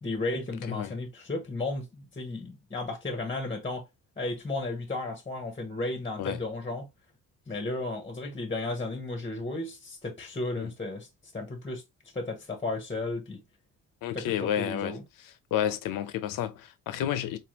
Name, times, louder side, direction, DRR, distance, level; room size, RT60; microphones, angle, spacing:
voice 1, 0.0-3.9 4.2-6.9 7.5-11.1 11.3-11.8 12.1-13.4 14.1-15.0, left 2 dB, 20° left, 0.9 m, -34 dB
voice 2, 14.0-14.9 15.5-17.4, left 10 dB, 80° left, 0.8 m, -30 dB
4.2 x 2.6 x 2.9 m
cardioid pair, 135°, 33 cm